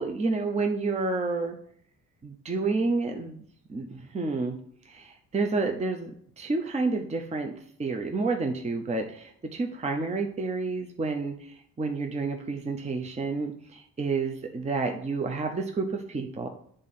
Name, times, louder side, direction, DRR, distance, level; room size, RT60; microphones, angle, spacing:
voice 1, 0.0-1.6 2.2-3.4 3.7-4.5 4.9-6.1 6.4-7.5 7.8-16.5, right 3 dB, 20° right, 3 dB, 0.6 m, -29 dB
7.7 x 3.8 x 4.1 m, 0.63 s
cardioid pair, 90°, 30 cm